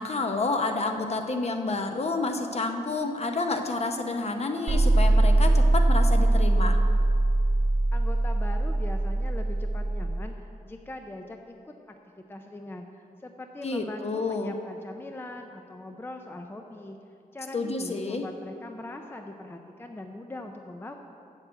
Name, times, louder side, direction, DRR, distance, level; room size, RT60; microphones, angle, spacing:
voice 1, 0.0-6.8 13.6-14.5 17.5-18.2, left 3 dB, 45° left, 5 dB, 0.8 m, -29 dB
sound 1, 4.7-10.2, right 2 dB, 50° right, 1.1 m, -22 dB
voice 2, 7.9-11.9 12.3-17.0 17.3-20.9, left 1 dB, 15° left, 4 dB, 0.5 m, -41 dB
7.6 x 7.4 x 7.7 m, 2.7 s
wide cardioid pair, 120°, 15 cm